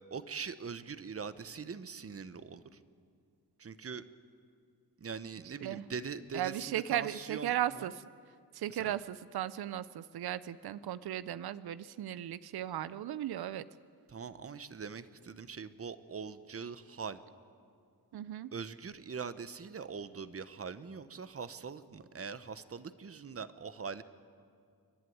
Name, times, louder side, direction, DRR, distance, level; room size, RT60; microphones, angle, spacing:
voice 1, 0.1-2.8 3.6-4.0 5.0-7.9 8.7-9.0 14.1-17.2 18.5-24.0, right 5 dB, 40° right, 13 dB, 0.9 m, -42 dB
voice 2, 6.3-8.1 8.5-13.6 18.1-18.5, right 12 dB, 90° right, 16 dB, 0.5 m, -36 dB
29.0 x 11.0 x 9.3 m, 2.3 s
wide cardioid pair, 100°, 37 cm